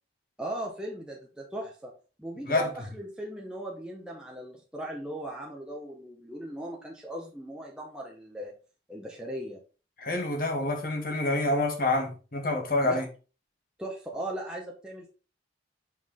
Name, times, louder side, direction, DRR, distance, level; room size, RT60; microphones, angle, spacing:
voice 1, 0.4-1.9 2.2-8.5 8.9-9.6 12.8-13.0 13.8-15.1, right 1 dB, 5° right, 1.0 m, -38 dB
voice 2, 10.0-13.0, left 2 dB, 50° left, 1.5 m, -27 dB
5.7 x 4.7 x 3.8 m
head